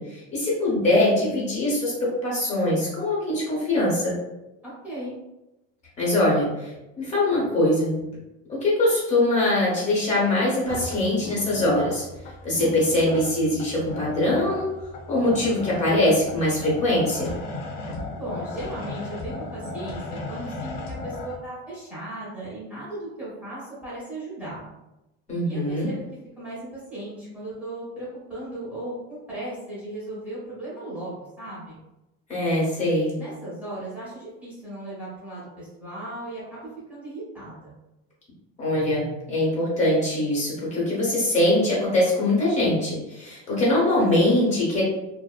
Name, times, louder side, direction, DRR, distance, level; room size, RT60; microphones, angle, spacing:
voice 1, 0.0-4.2 6.0-6.7 7.0-8.0 8.5-12.0 12.4-14.7 15.1-17.3 25.3-25.9 32.3-33.1 38.6-44.8, left 1 dB, 25° left, -5 dB, 1.1 m, -22 dB
voice 2, 4.6-5.2 18.2-20.0 20.3-24.7 25.4-26.0 26.4-31.8 33.2-37.7, right 1 dB, 5° right, -10 dB, 0.9 m, -36 dB
sound 1, 10.6-21.4, left 2 dB, 65° left, 0.7 m, -36 dB
2.6 x 2.1 x 2.3 m, 0.96 s
cardioid pair, 145°, 31 cm